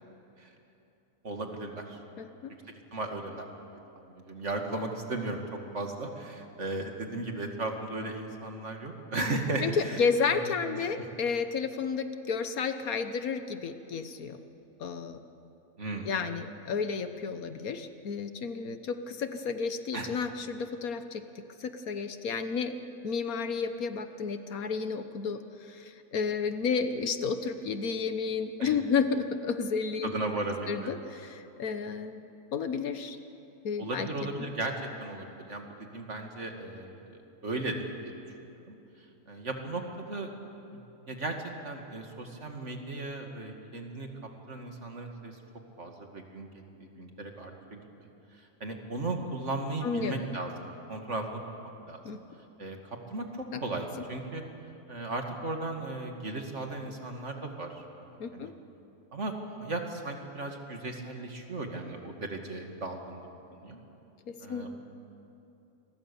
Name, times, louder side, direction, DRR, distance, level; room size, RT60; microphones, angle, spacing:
voice 1, 1.2-2.0 2.9-3.5 4.0-10.1 10.7-10.9 15.8-16.1 19.9-20.1 28.6-28.8 30.0-30.9 33.8-37.8 38.0-38.1 38.7-38.8 39.3-40.3 40.7-40.8 41.1-41.4 41.6-44.1 44.5-45.4 45.8-47.8 48.3-50.5 50.9-51.4 51.9-52.0 52.6-54.4 54.9-58.5 59.1-63.2 63.6-63.8 64.4-64.8, right 2 dB, 50° right, 3 dB, 2.5 m, -36 dB
voice 2, 2.2-2.5 9.6-14.4 14.8-15.2 16.1-21.2 21.6-22.7 23.0-30.1 30.7-32.2 32.5-33.2 33.6-34.1 49.8-50.2 52.0-52.2 53.5-53.6 58.2-58.5 64.3-64.7, left 5 dB, 70° left, 9 dB, 1.5 m, -31 dB
28.0 x 22.0 x 7.1 m, 2.9 s
omnidirectional pair, 1.6 m